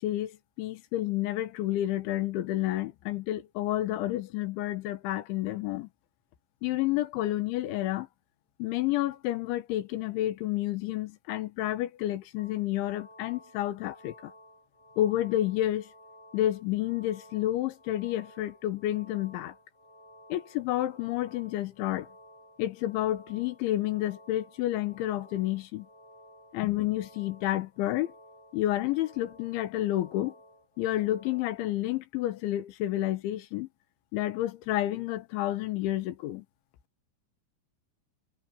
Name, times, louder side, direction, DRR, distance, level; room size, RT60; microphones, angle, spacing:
voice 1, 0.0-5.9 6.6-8.1 8.6-14.3 15.0-15.9 16.3-19.5 20.3-22.1 22.6-25.9 26.5-28.1 28.5-30.4 30.8-33.7 34.1-36.5, left 14 dB, 85° left, 3.7 m, -30 dB
sound 1, 12.4-31.6, left 1 dB, 20° left, 5.4 m, -55 dB
omnidirectional pair, 5.2 m